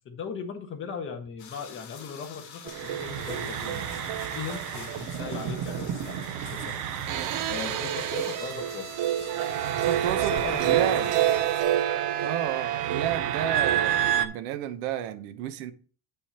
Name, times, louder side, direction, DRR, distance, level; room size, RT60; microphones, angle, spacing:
voice 1, 0.0-4.0 4.3-8.9 10.2-11.3, left 6 dB, 25° left, 1.3 m, -38 dB
sound 1, 1.4-11.6, left 7 dB, 50° left, 2.6 m, -46 dB
sound 2, 2.7-14.3, right 11 dB, 40° right, 0.7 m, -28 dB
voice 2, 9.9-11.0 12.2-15.7, right 10 dB, 75° right, 1.2 m, -31 dB
8.6 x 5.4 x 4.3 m
cardioid pair, 180°, 49 cm